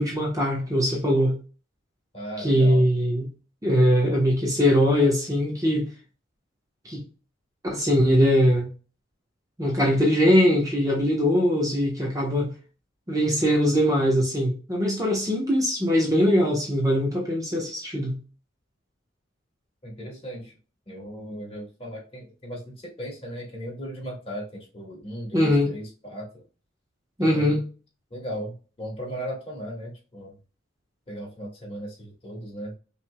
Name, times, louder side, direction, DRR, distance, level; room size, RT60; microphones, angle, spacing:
voice 1, 0.0-1.4 2.4-3.3 3.6-5.9 6.8-7.0 7.6-8.7 9.6-12.5 13.1-18.2 25.3-25.7 27.2-27.6, equal, 20° right, -1 dB, 1.1 m, -21 dB
voice 2, 2.1-2.8 19.8-20.5 20.9-26.4 27.2-27.6 28.1-30.3 31.1-32.7, equal, 30° left, -3 dB, 2.1 m, -37 dB
5.9 x 3.4 x 2.2 m, 0.35 s
head